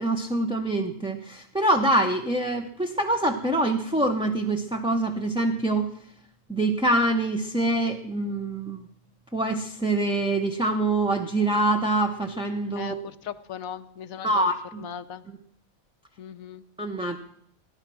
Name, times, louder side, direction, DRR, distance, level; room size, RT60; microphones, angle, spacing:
voice 1, 0.0-5.9 6.5-8.8 9.3-12.9 14.2-14.5 16.8-17.2, right 1 dB, 5° right, 3 dB, 0.7 m, -25 dB
voice 2, 12.7-14.5 14.8-15.3 16.2-16.6, left 8 dB, 80° left, 11 dB, 1.2 m, -38 dB
16.5 x 10.5 x 6.2 m, 0.70 s
omnidirectional pair, 1.5 m